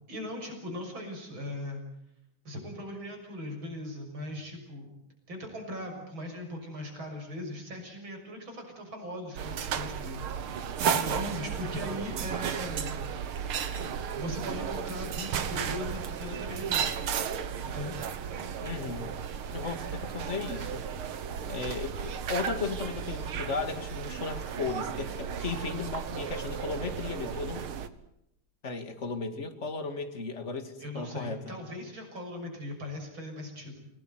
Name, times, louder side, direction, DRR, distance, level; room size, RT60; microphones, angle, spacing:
voice 1, 0.1-1.8 2.5-4.9 5.3-13.0 14.1-16.9 17.6-18.0 30.8-33.8, left 1 dB, 70° right, 2 dB, 7.4 m, -39 dB
sound 1, 9.4-27.9, right 7 dB, 85° right, 2.3 m, -34 dB
voice 2, 18.6-19.2 19.5-20.8 21.5-27.6 28.6-31.6, left 4 dB, 35° left, 8 dB, 2.5 m, -35 dB
28.0 x 19.0 x 9.3 m, 0.79 s
omnidirectional pair, 2.3 m